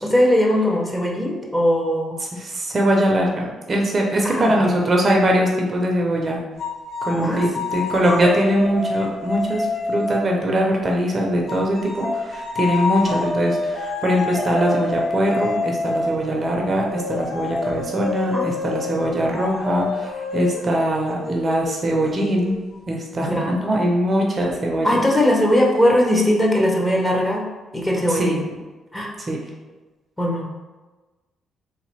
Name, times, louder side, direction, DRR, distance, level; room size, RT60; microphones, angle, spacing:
voice 1, 0.0-2.2 4.2-4.6 7.1-7.4 18.3-18.4 23.2-23.6 24.8-27.5 27.7-28.4 28.9-29.1 30.2-30.5, left 1 dB, 10° left, -1 dB, 0.8 m, -19 dB
voice 2, 2.4-6.4 7.1-22.6 22.9-25.0 28.1-28.4 29.3-29.4, right 1 dB, 40° right, 0 dB, 0.6 m, -21 dB
sound 1, 6.6-10.5 11.5-22.8, left 3 dB, 65° left, 0.8 m, -27 dB
3.3 x 3.2 x 3.2 m, 1.2 s
cardioid pair, 90°, 0 cm